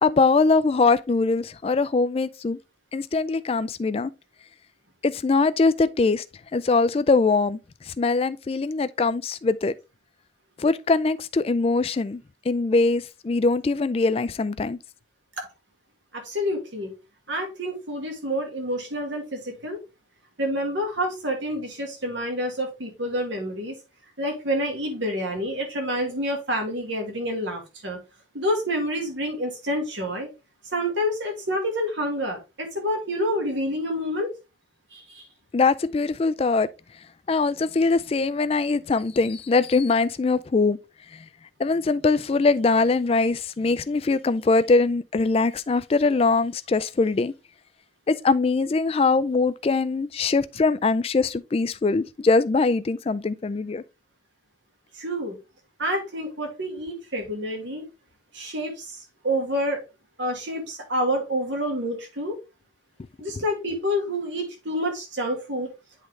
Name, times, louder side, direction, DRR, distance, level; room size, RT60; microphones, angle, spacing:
voice 1, 0.0-2.6 2.9-4.1 5.0-6.2 6.5-7.6 8.0-9.7 10.6-12.2 12.5-14.8 35.5-36.7 37.3-40.8 41.6-47.3 48.1-53.8, left 3 dB, 30° left, 0.3 m, -22 dB
voice 2, 16.1-16.9 17.3-19.8 20.4-23.8 24.2-28.0 28.3-30.3 30.7-34.3 34.9-35.2 54.9-55.4 55.8-57.8 58.3-59.8 60.2-62.4 63.2-65.7, equal, 70° right, 2.0 m, -28 dB
8.2 x 3.7 x 3.2 m
head